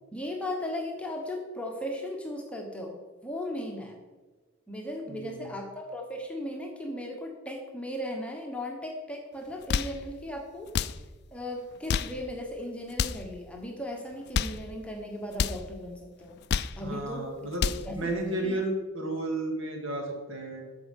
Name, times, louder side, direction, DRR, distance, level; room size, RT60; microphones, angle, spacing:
voice 1, 0.1-4.0 4.7-10.7 11.3-16.4 16.8-17.3 17.9-18.1 18.4-18.6, left 1 dB, 5° left, 1 dB, 1.0 m, -37 dB
voice 2, 5.1-5.5 16.8-17.6 18.0-20.6, right 1 dB, 65° right, 1 dB, 2.5 m, -32 dB
sound 1, 9.5-10.0 10.7-11.0 11.7-12.2 12.9-13.3 14.1-14.6 15.3-15.6 16.3-16.8 17.4-17.9, left 7 dB, 50° left, 0.3 m, -29 dB
14.0 x 5.2 x 5.3 m, 1.3 s
head